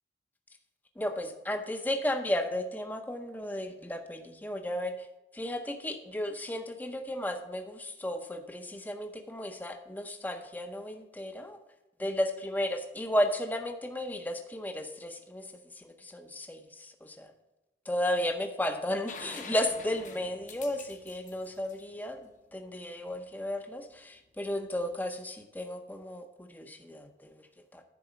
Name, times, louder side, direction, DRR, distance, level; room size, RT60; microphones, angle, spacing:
voice 1, 1.0-5.1 5.3-11.6 12.0-15.5 15.7-17.3 17.9-27.5 27.7-27.8, left 1 dB, 10° left, 5 dB, 0.6 m, -34 dB
sound 1, 19.1-22.8 24.7-24.8, left 5 dB, 45° left, 1.0 m, -47 dB
10.5 x 4.1 x 7.1 m, 1.0 s
head